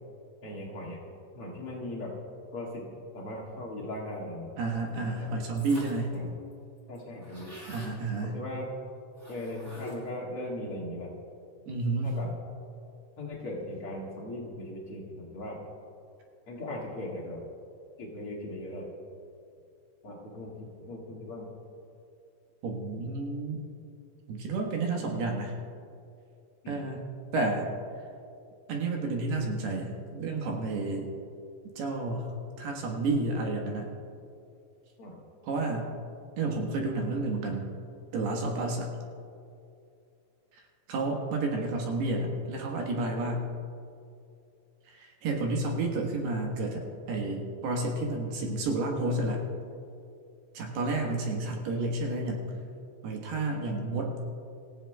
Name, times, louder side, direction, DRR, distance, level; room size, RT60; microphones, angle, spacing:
voice 1, 0.4-1.0 1.3-2.1 2.5-2.9 3.1-4.5 4.9-5.3 6.1-6.3 6.9-7.5 8.2-8.7 9.3-11.1 12.0-12.3 13.2-15.6 16.5-17.4 18.0-18.9 20.0-20.5 20.8-21.5 26.6-26.8 35.0-35.2, left 1 dB, 90° left, -5 dB, 1.2 m, -38 dB
voice 2, 4.6-6.2 7.7-8.4 11.7-12.1 22.6-23.6 24.3-25.5 26.7-27.0 27.3-27.7 28.7-31.1 31.8-33.9 35.4-35.9 36.4-37.7 38.1-38.9 40.5-40.6 40.9-43.5 44.9-49.4 50.5-52.5 53.0-54.2, right 2 dB, 65° right, 0 dB, 2.7 m, -31 dB
sound 1, 5.6-6.1 6.5-6.6 6.8-7.9 9.2-10.2, left 1 dB, 15° right, 4.0 m, -47 dB
26.5 x 15.5 x 2.3 m, 2.5 s
omnidirectional pair, 6.0 m